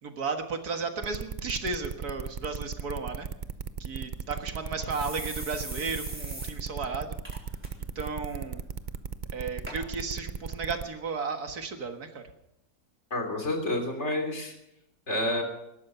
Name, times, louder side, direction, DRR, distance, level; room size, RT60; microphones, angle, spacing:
voice 1, 0.0-3.3 3.8-7.2 8.0-8.6 9.3-12.2, right 4 dB, 70° right, 5 dB, 2.1 m, -34 dB
sound 1, 1.0-10.8, right 6 dB, 50° right, 0.5 m, -36 dB
sound 2, 4.0-4.1 4.4-4.5 4.9-6.5 6.9-7.0 7.2-7.7 8.0-8.3 9.0-9.1 9.7-9.8 10.5-10.6, equal, 5° right, 4.0 m, -41 dB
voice 2, 13.1-14.5 15.1-15.4, left 1 dB, 45° left, 4 dB, 3.6 m, -29 dB
19.0 x 13.0 x 5.7 m, 0.84 s
omnidirectional pair, 1.7 m